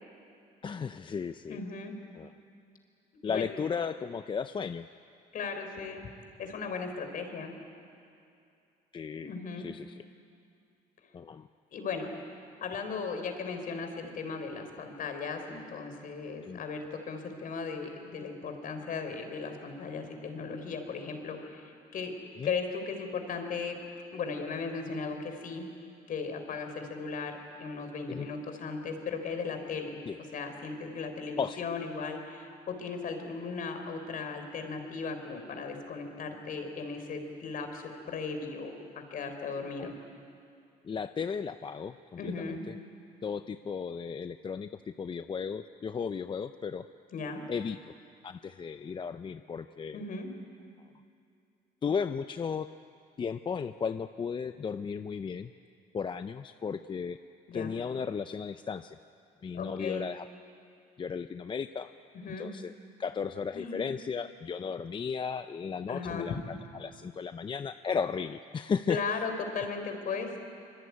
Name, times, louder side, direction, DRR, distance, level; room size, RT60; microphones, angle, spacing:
voice 1, 0.6-1.6 2.2-2.3 3.2-4.9 8.9-10.0 11.1-11.5 16.4-16.6 22.4-22.5 28.1-28.3 30.1-30.2 31.4-31.6 39.8-39.9 40.8-42.7 43.2-44.7 45.0-46.8 47.5-47.8 48.2-50.0 51.8-52.7 53.2-55.5 55.9-57.2 57.5-59.0 59.4-60.3 61.0-61.9 62.4-62.7 63.0-66.4 66.8-69.0, left 6 dB, 30° left, 10 dB, 0.6 m, -35 dB
voice 2, 1.5-1.9 3.2-3.5 5.3-6.0 6.4-7.5 9.1-9.7 11.7-12.1 12.6-22.1 22.4-23.8 24.1-25.7 26.1-30.0 30.3-40.0 42.2-42.6 47.1-47.5 49.9-50.3 57.5-57.8 59.5-60.1 62.1-62.5 63.5-63.8 65.9-66.3 68.9-70.4, left 5 dB, 55° left, 6 dB, 4.4 m, -37 dB
25.0 x 23.5 x 9.7 m, 2.5 s
cardioid pair, 110°, 17 cm